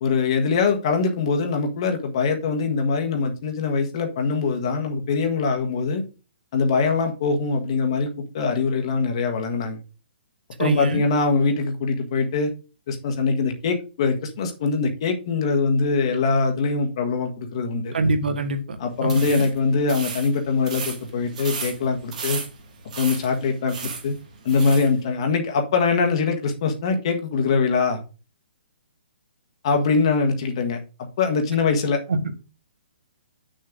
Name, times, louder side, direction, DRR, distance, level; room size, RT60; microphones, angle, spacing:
voice 1, 0.0-6.0 6.5-8.1 8.3-9.8 10.6-12.5 12.9-17.9 18.8-22.4 23.0-24.1 24.4-28.0 29.6-30.8 31.2-32.0, left 4 dB, 35° left, 1.5 m, -23 dB
voice 2, 10.6-11.0 17.9-19.4 32.1-32.2, right 2 dB, 65° right, 1.7 m, -24 dB
sound 1, 19.0-24.9, right 5 dB, 45° right, 2.5 m, -35 dB
8.7 x 6.4 x 3.8 m
hypercardioid pair, 175°, 6 cm